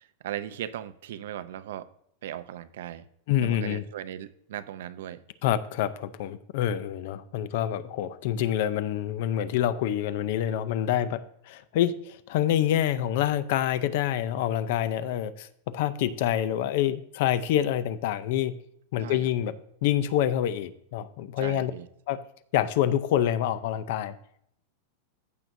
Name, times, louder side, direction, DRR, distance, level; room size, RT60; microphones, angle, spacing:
voice 1, 0.0-1.9 2.2-3.1 3.4-5.2 19.0-19.3 21.4-21.9, right 11 dB, 65° right, 14 dB, 0.6 m, -38 dB
voice 2, 3.3-3.8 5.4-15.5 15.7-18.5 18.9-19.5 19.8-21.7 22.1-22.2 22.5-24.1, left 11 dB, 45° left, 14 dB, 0.5 m, -27 dB
15.0 x 6.1 x 2.7 m, 0.72 s
supercardioid pair, 180°, 0 cm